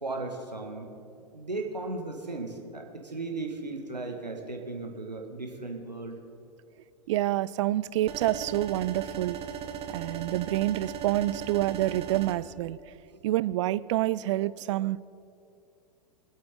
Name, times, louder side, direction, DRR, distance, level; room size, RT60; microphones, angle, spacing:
voice 1, 0.0-0.9 1.3-6.2, right 3 dB, 90° right, 2 dB, 1.7 m, -36 dB
voice 2, 7.1-9.4 9.9-12.8 13.2-15.0, right 15 dB, 45° right, 18 dB, 0.4 m, -27 dB
sound 1, 8.1-12.3, right 8 dB, 30° right, 1.2 m, -37 dB
24.5 x 8.6 x 3.8 m, 2.5 s
figure-of-eight pair, 100°, 21 cm